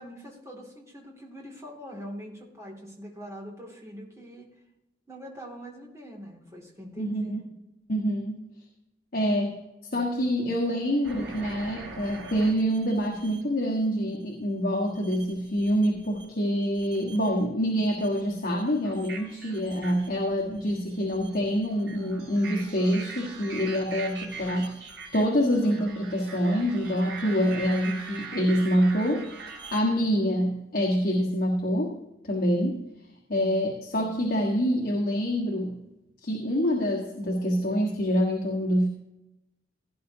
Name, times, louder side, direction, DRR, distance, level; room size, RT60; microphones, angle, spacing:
voice 1, 0.0-4.5 5.1-7.4, equal, 15° right, -1 dB, 2.5 m, -43 dB
voice 2, 7.0-7.4 7.9-8.4 9.1-9.6 9.9-24.7 25.1-32.0 32.3-32.8 33.3-35.8 36.2-38.9, equal, 55° left, -1 dB, 1.5 m, -26 dB
sound 1, 11.0-13.4 14.9-16.2 16.6-17.4 17.8-29.8, right 4 dB, 85° right, 4.7 m, -42 dB
17.0 x 10.0 x 2.8 m, 0.93 s
head